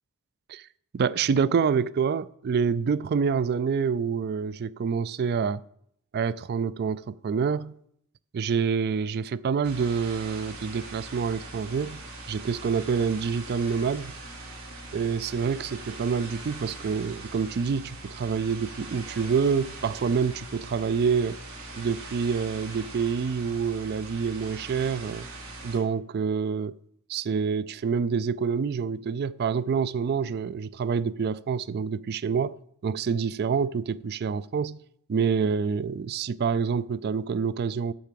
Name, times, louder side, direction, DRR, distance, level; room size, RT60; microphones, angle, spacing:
voice 1, 0.9-5.6 6.1-7.7 8.3-12.0 12.3-14.1 14.9-21.4 21.7-25.3 25.6-26.7 27.1-32.5 32.8-34.8 35.1-37.9, right 6 dB, 45° right, 0.3 m, -27 dB
sound 1, 9.6-25.8, right 2 dB, 80° right, 3.0 m, -41 dB
12.0 x 5.7 x 7.6 m
head